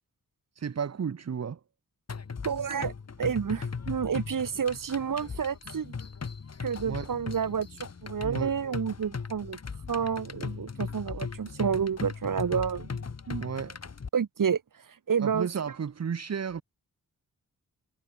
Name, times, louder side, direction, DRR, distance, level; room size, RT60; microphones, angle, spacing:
voice 1, 0.5-1.6 6.8-7.1 8.2-8.6 13.3-13.8 15.2-16.6, right 7 dB, 50° right, 1.2 m, -33 dB
sound 1, 2.1-14.1, left 5 dB, 50° left, 4.0 m, -38 dB
voice 2, 2.4-2.9 3.2-5.9 6.6-7.7 8.0-9.6 9.9-12.9 14.1-14.6 15.1-15.5, right 7 dB, 70° right, 2.4 m, -29 dB
wide cardioid pair, 160°, 34 cm